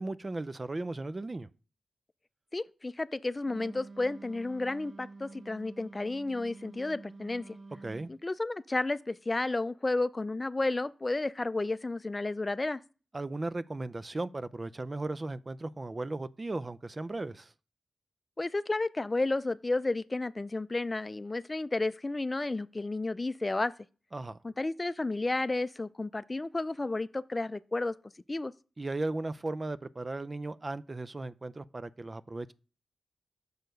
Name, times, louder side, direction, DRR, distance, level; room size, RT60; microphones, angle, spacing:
voice 1, 0.0-1.5 7.8-8.1 13.1-17.5 24.1-24.4 28.8-32.5, right 2 dB, 40° right, 0.4 m, -36 dB
voice 2, 2.5-7.6 8.1-12.8 18.4-23.7 24.4-27.9 28.3-28.5, left 2 dB, 35° left, 0.4 m, -32 dB
Wind instrument woodwind instrument, 3.4-8.2, right 3 dB, 60° right, 1.0 m, -49 dB
6.6 x 4.5 x 5.2 m
cardioid pair, 40°, 0 cm